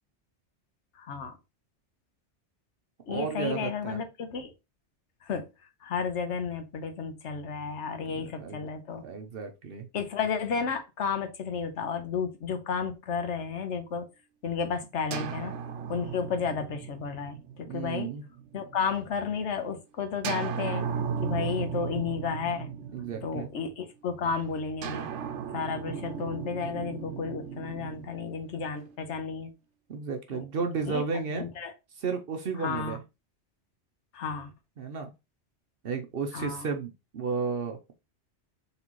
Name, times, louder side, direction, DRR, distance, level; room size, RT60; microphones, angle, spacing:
voice 1, 1.0-1.4 3.1-4.5 5.3-5.5 5.8-9.0 9.9-14.1 14.4-15.5 15.9-18.1 18.5-20.8 21.2-22.7 23.2-25.1 25.5-29.5 30.3-30.4 30.9-31.0 31.3-31.7 32.6-33.0 34.1-34.5 36.3-36.7, left 6 dB, 80° left, 1.2 m, -32 dB
voice 2, 3.1-4.0 8.0-8.6 9.0-9.9 17.7-18.2 22.9-23.5 29.9-31.4 32.0-33.0 34.8-35.1 35.8-37.8, right 5 dB, 60° right, 0.8 m, -33 dB
sound 1, 15.1-18.9 20.2-23.8 24.8-29.0, right 6 dB, 85° right, 1.0 m, -36 dB
4.1 x 3.3 x 2.9 m
omnidirectional pair, 1.2 m